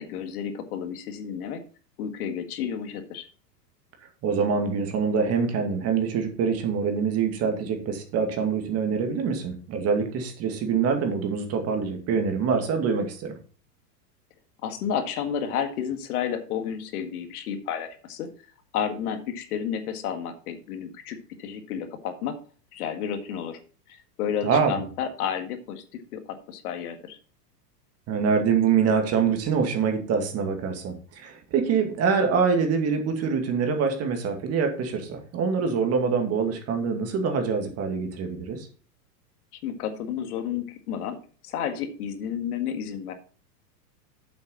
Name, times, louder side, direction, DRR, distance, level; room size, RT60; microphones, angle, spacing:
voice 1, 0.0-1.6 2.0-3.3 14.6-18.3 18.7-22.4 22.7-23.6 23.9-27.2 39.6-41.2 41.4-43.1, left 8 dB, 60° left, 8 dB, 1.9 m, -31 dB
voice 2, 4.2-13.4 24.4-24.8 28.1-38.7, right 5 dB, 30° right, 5 dB, 2.3 m, -25 dB
8.5 x 7.7 x 4.1 m, 0.39 s
supercardioid pair, 140°, 49 cm